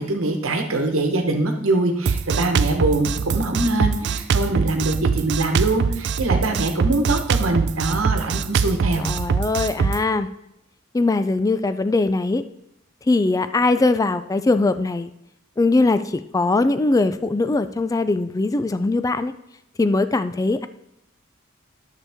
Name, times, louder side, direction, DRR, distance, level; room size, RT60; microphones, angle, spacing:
voice 1, 0.0-9.0, right 2 dB, 75° right, 4 dB, 1.1 m, -23 dB
Drum kit, 2.1-10.0, right 5 dB, 60° right, 0.4 m, -23 dB
voice 2, 9.0-10.3 10.9-12.4 13.1-15.1 15.6-19.3 19.8-20.7, left 3 dB, 15° left, 12 dB, 0.3 m, -21 dB
9.9 x 6.8 x 3.5 m, 0.84 s
head